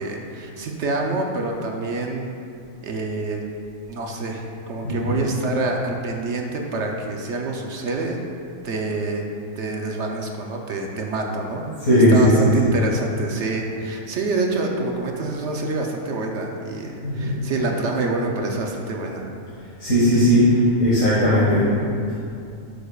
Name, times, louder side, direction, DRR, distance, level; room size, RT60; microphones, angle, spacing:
voice 1, 0.0-2.3 2.8-3.4 3.9-8.2 8.6-9.3 9.6-19.3, right 3 dB, 60° right, 1 dB, 0.9 m, -27 dB
voice 2, 4.8-5.2 11.8-12.8 17.0-17.4 19.8-21.6, equal, 65° left, -11 dB, 2.1 m, -17 dB
11.5 x 6.5 x 2.3 m, 2.6 s
omnidirectional pair, 1.5 m